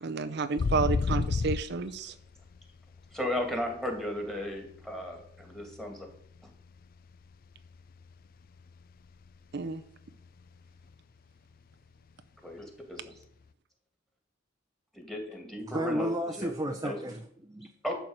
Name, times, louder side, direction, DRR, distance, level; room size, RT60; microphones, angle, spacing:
voice 1, 0.0-2.2 9.5-9.8, right 4 dB, 60° right, 9 dB, 0.6 m, -31 dB
sound 1, 0.6-3.9 4.2-6.5 6.8-7.1 7.4-9.4 9.7-9.8 10.1-10.5 10.8-10.9 13.1-13.2, left 4 dB, 50° left, 0.4 m, -32 dB
voice 2, 3.1-6.1 12.4-13.1 14.9-16.5 16.8-17.0 17.8-18.0, left 1 dB, ahead, 3 dB, 2.3 m, -35 dB
voice 3, 15.7-17.7, right 1 dB, 20° right, 4 dB, 0.7 m, -32 dB
11.5 x 4.6 x 7.9 m, 0.66 s
head